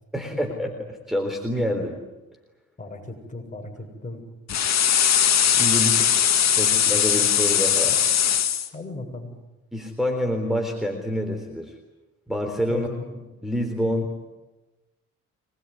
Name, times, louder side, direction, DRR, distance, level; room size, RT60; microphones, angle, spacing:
voice 1, 0.1-2.0 5.4-8.0 9.7-11.8 12.3-14.2, equal, ahead, 2 dB, 3.8 m, -27 dB
voice 2, 2.8-4.2 8.7-9.3 12.7-13.1, left 2 dB, 25° left, 2 dB, 7.7 m, -36 dB
sound 1, 4.5-8.7, left 9 dB, 60° left, 2.2 m, -20 dB
24.5 x 21.0 x 9.7 m, 1.1 s
cardioid pair, 90°, 30 cm